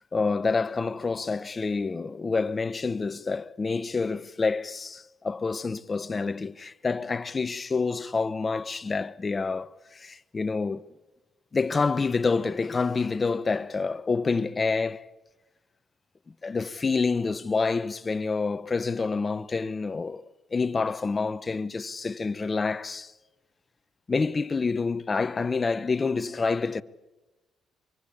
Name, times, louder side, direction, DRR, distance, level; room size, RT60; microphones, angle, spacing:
voice 1, 0.0-10.8 11.5-15.1 16.4-20.2 20.5-23.1 24.1-26.8, left 4 dB, 30° left, 0.9 m, -28 dB
25.0 x 23.0 x 8.5 m
cardioid pair, 90°, 0 cm